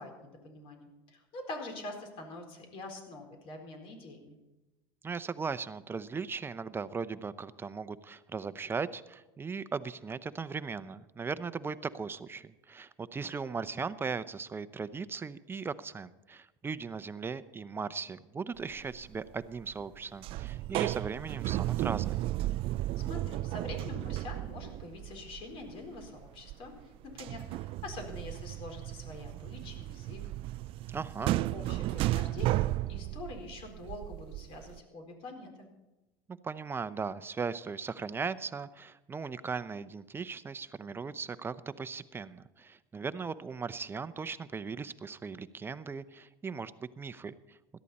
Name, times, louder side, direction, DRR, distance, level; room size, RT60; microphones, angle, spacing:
voice 1, 0.0-4.4 23.0-30.2 31.1-35.7, left 2 dB, 55° left, 3 dB, 4.3 m, -45 dB
voice 2, 5.0-22.3 30.9-31.3 36.3-46.7 47.0-47.6, right 5 dB, 20° right, 14 dB, 0.7 m, -38 dB
sound 1, 18.8-19.1 19.4-20.0 20.2-26.8 27.1-34.8, right 16 dB, 50° right, 0.4 m, -34 dB
17.0 x 12.5 x 4.2 m, 1.0 s
supercardioid pair, 95°, 12 cm